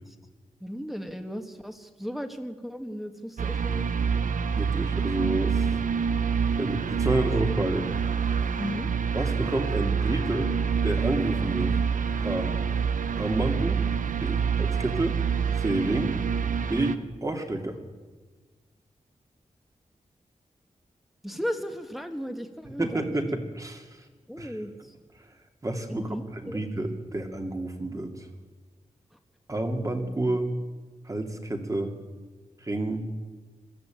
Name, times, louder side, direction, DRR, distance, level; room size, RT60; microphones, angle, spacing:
voice 1, 0.6-3.9 8.6-8.9 21.2-23.1 24.3-24.9 25.9-26.6, equal, ahead, 6 dB, 1.6 m, -35 dB
sound 1, 3.4-17.0, right 6 dB, 90° right, 0.9 m, -27 dB
voice 2, 4.5-5.7 6.6-7.9 9.1-10.5 10.8-11.8 12.2-12.5 13.2-13.8 14.2-15.2 15.6-16.1 16.7-17.8 22.6-24.0 24.4-24.5 25.6-26.1 26.4-28.3 29.5-30.5 31.1-32.0 32.6-33.0, right 2 dB, 25° right, 4 dB, 2.4 m, -29 dB
21.5 x 14.0 x 9.0 m, 1.4 s
wide cardioid pair, 110°, 13 cm